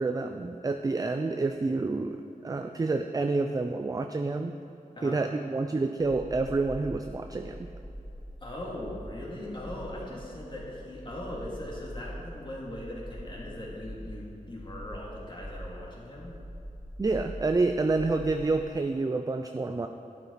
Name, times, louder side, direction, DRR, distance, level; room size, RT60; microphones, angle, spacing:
voice 1, 0.0-4.6 5.0-7.7 17.0-19.9, right 3 dB, 25° right, 6 dB, 0.4 m, -28 dB
sound 1, 6.0-18.6, equal, 10° left, 0.7 m, -44 dB
voice 2, 8.4-16.4, left 1 dB, 35° left, -4 dB, 2.7 m, -40 dB
11.5 x 8.8 x 4.1 m, 2.8 s
wide cardioid pair, 75°, 14 cm